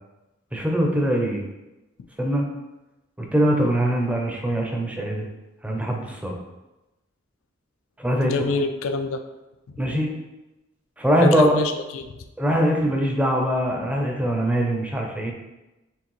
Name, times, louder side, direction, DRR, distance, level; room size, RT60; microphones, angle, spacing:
voice 1, 0.5-1.4 2.2-2.5 3.2-5.3 5.6-6.3 8.0-8.3 9.8-10.1 11.0-11.6 12.4-15.3, equal, 5° right, 1 dB, 0.6 m, -22 dB
voice 2, 8.2-9.2 9.7-9.8 11.2-12.0, left 3 dB, 80° left, 8 dB, 0.4 m, -26 dB
4.6 x 3.3 x 3.1 m, 1.0 s
head